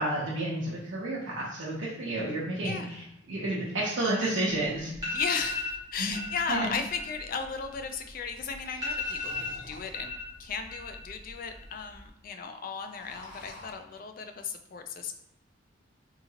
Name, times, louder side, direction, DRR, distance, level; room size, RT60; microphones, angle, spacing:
voice 1, 0.0-5.2 6.0-6.2 6.5-6.7, right 1 dB, 80° right, -7 dB, 0.7 m, -31 dB
voice 2, 2.6-3.0 5.1-10.1 10.4-15.1, left 5 dB, 45° left, 6 dB, 0.4 m, -35 dB
sound 1, 4.5-4.6 4.9-5.8 6.1-6.5 6.8-8.2 8.5-8.6 8.8-10.3 10.6-11.2 11.4-12.0, left 3 dB, 20° right, 1.4 m, -35 dB
sound 2, 6.2-7.3 8.2-10.2 10.8-10.9 11.1-11.2 11.4-11.8 12.1-12.3 12.6-13.7, left 2 dB, 60° left, 1.2 m, -49 dB
3.6 x 2.9 x 2.8 m, 0.84 s
head